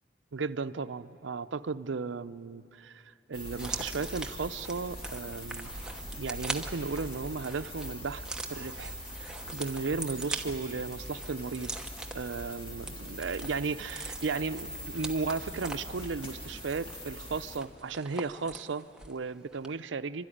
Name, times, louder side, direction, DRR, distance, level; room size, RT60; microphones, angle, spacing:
voice 1, 0.3-3.0 3.3-5.7 6.2-8.2 8.5-8.9 9.2-11.8 12.1-20.3, right 4 dB, 80° right, 12 dB, 0.6 m, -35 dB
sound 1, 3.3-17.6, equal, 30° left, 2.3 m, -42 dB
sound 2, 3.5-19.2 19.5-19.7, right 2 dB, 5° right, 1.0 m, -43 dB
29.0 x 13.0 x 10.0 m, 2.6 s
head